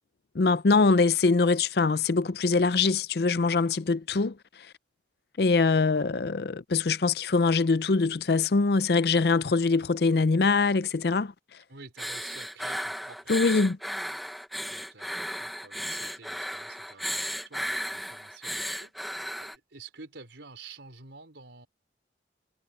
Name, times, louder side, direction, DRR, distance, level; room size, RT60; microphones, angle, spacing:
voice 1, 0.3-4.4 5.4-11.3 13.3-13.8, left 4 dB, 60° left, 0.5 m, -23 dB
voice 2, 5.7-6.1 11.7-13.7 14.7-21.7, right 4 dB, 80° right, 4.3 m, -50 dB
sound 1, 12.0-19.5, equal, ahead, 1.0 m, -35 dB
head